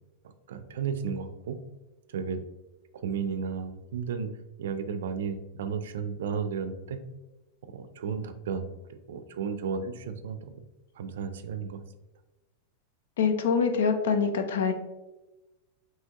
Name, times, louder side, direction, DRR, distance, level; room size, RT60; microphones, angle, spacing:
voice 1, 0.5-1.6 2.1-2.4 3.0-4.3 4.6-7.0 7.7-10.5 11.0-11.8, right 6 dB, 75° right, 10 dB, 0.4 m, -33 dB
voice 2, 13.2-14.7, left 6 dB, 80° left, 7 dB, 0.6 m, -25 dB
5.6 x 2.9 x 2.9 m, 1.1 s
supercardioid pair, 180°, 0 cm